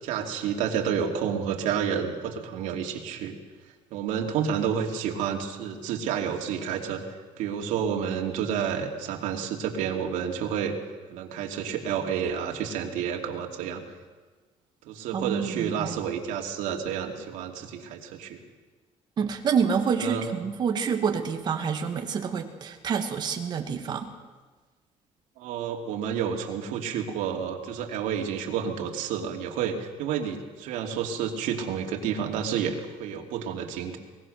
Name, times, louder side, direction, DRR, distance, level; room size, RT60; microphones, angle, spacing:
voice 1, 0.0-3.4 3.9-7.0 7.4-10.8 11.1-13.8 14.8-18.4 20.0-20.3 25.4-34.0, right 8 dB, 85° right, 2 dB, 2.7 m, -30 dB
voice 2, 15.1-15.9 19.2-24.1, right 6 dB, 35° right, 5 dB, 1.8 m, -27 dB
22.0 x 20.0 x 6.6 m, 1.3 s
cardioid pair, 175°, 13 cm